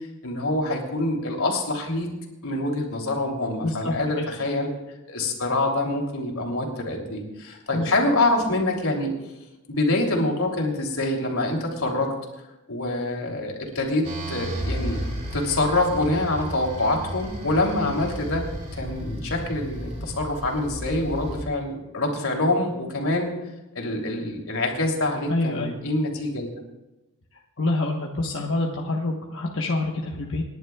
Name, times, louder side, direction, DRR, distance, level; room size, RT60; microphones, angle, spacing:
voice 1, 0.2-2.1 2.4-4.7 5.1-9.1 9.7-12.1 12.7-15.0 15.3-18.5 18.8-23.3 23.7-26.5, left 2 dB, 85° left, 0 dB, 3.1 m, -25 dB
voice 2, 3.6-4.3 7.7-7.9 25.3-25.7 27.6-30.4, left 2 dB, 60° left, -2 dB, 1.2 m, -26 dB
sound 1, 14.0-21.4, equal, 35° right, 2.8 m, -33 dB
28.5 x 11.0 x 2.4 m, 1.0 s
head